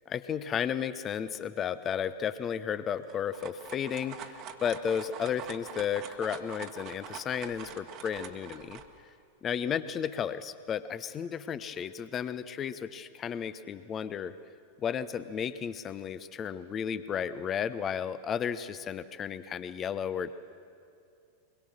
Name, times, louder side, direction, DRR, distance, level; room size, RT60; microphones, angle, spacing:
voice 1, 0.1-8.8 9.4-14.3 14.8-20.3, left 8 dB, 25° left, 14 dB, 0.9 m, -33 dB
sound 1, 3.0-8.9, right 7 dB, 40° right, 1.5 m, -44 dB
23.5 x 21.5 x 6.5 m, 2.5 s
figure-of-eight pair, 90°, 0 cm